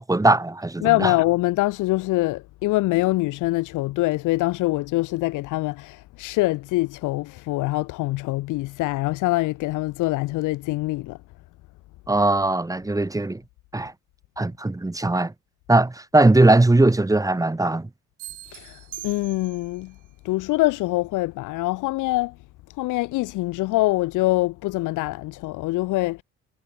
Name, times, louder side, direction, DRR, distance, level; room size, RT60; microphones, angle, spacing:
voice 1, 0.0-1.1 12.1-13.4 13.7-13.9 14.4-15.3 15.7-17.9, right 2 dB, 10° right, 1.3 m, -19 dB
voice 2, 0.8-11.2 18.5-19.9 20.2-22.4 22.8-26.2, left 19 dB, 90° left, 0.6 m, -24 dB
sound 1, 18.2-19.8, right 16 dB, 90° right, 3.3 m, -41 dB
cardioid pair, 90°, 30 cm